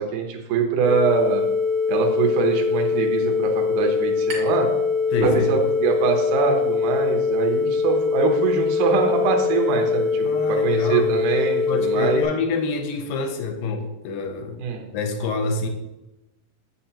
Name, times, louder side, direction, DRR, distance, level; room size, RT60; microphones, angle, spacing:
voice 1, 0.0-1.4 1.9-4.7 5.2-12.2 14.6-14.9, right 5 dB, 75° right, 1 dB, 1.9 m, -23 dB
sound 1, 0.8-12.2, left 5 dB, 50° left, 0.7 m, -23 dB
sound 2, 4.3-4.7 5.0-5.9, right 2 dB, 60° right, 1.4 m, -32 dB
voice 2, 5.1-5.5 10.2-11.1 11.7-14.6 14.9-15.7, left 4 dB, 80° left, 5 dB, 2.3 m, -26 dB
7.5 x 5.7 x 2.8 m, 0.97 s
omnidirectional pair, 4.2 m